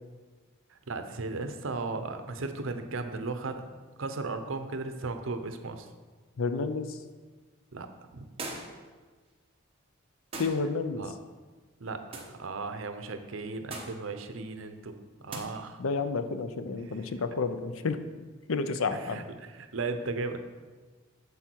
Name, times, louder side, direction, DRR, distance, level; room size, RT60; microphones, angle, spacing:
voice 1, 0.7-3.7 4.0-5.9 7.7-8.3 10.9-11.1 11.8-15.8 16.9-17.1 18.9-20.4, right 3 dB, 70° right, 8 dB, 0.7 m, -36 dB
voice 2, 6.4-7.0 10.4-11.1 15.8-18.1 18.5-19.2, left 4 dB, 85° left, 10 dB, 0.6 m, -30 dB
sound 1, 8.4-8.9 10.3-10.7 12.1-12.4 13.7-14.0 15.3-15.4, right 2 dB, 25° right, 1.1 m, -39 dB
8.1 x 7.2 x 4.6 m, 1.4 s
head